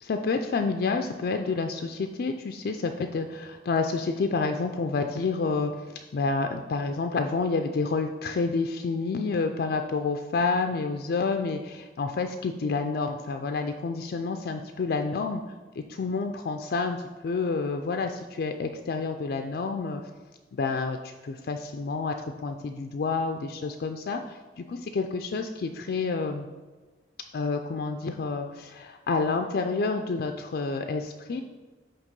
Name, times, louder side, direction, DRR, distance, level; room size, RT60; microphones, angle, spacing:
voice 1, 0.0-15.4 15.9-17.0 17.2-20.0 20.5-22.1 22.4-26.5 27.3-31.4, left 4 dB, 60° left, 5 dB, 0.4 m, -29 dB
8.1 x 3.0 x 5.2 m, 1.3 s
head